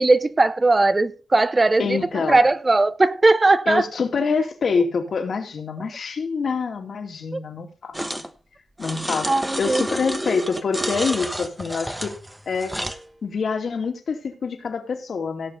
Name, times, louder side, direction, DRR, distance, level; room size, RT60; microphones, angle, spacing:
voice 1, 0.0-2.0 2.3-3.8 7.3-7.4 9.3-9.8, right 2 dB, 30° right, 0.7 m, -18 dB
voice 2, 1.8-2.4 3.7-8.2 8.8-9.3 9.6-12.1 12.5-12.8 13.2-15.5, left 5 dB, 65° left, 2.5 m, -26 dB
sound 1, 7.9-8.3 8.8-13.0, right 1 dB, 10° right, 1.1 m, -30 dB
17.0 x 6.7 x 4.0 m
cardioid pair, 70°, 0 cm